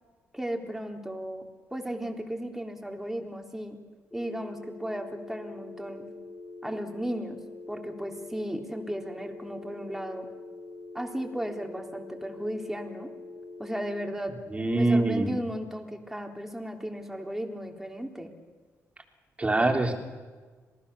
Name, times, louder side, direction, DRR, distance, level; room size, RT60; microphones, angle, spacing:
voice 1, 0.3-3.8 4.1-6.0 6.6-7.4 7.7-10.3 10.9-13.1 13.6-14.3 14.7-18.3, equal, 5° right, 2 dB, 3.6 m, -35 dB
sound 1, 4.1-14.1, left 2 dB, 15° left, 4.8 m, -44 dB
voice 2, 14.5-15.3 19.4-19.9, right 2 dB, 20° right, 3 dB, 3.5 m, -24 dB
27.0 x 19.0 x 7.0 m, 1.4 s
cardioid pair, 85°, 6 cm